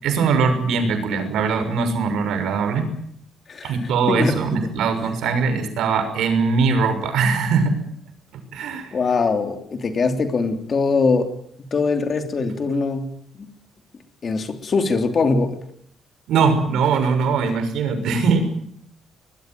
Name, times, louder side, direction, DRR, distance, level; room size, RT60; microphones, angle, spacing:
voice 1, 0.0-2.9 3.6-7.8 8.5-8.9 16.3-18.4, right 5 dB, 75° right, 8 dB, 6.2 m, -21 dB
voice 2, 4.1-4.7 8.9-11.3 11.7-13.1 13.4-13.5 14.2-15.6, left 4 dB, 35° left, 7 dB, 3.1 m, -22 dB
23.5 x 21.0 x 9.3 m, 0.66 s
cardioid pair, 165°, 0 cm